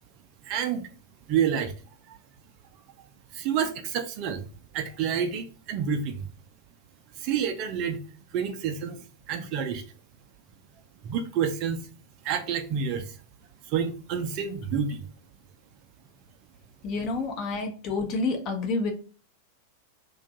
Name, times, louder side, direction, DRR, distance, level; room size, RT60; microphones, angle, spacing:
voice 1, 0.4-0.9 1.3-1.7 2.1-2.2 3.3-4.4 4.7-6.2 7.2-8.0 8.3-9.0 9.3-9.8 11.0-11.8 12.2-13.2 13.7-15.0, right 7 dB, 40° right, 0.4 m, -28 dB
voice 2, 16.8-18.9, left 3 dB, 35° left, 0.7 m, -29 dB
2.5 x 2.3 x 3.9 m
figure-of-eight pair, 90°, 0 cm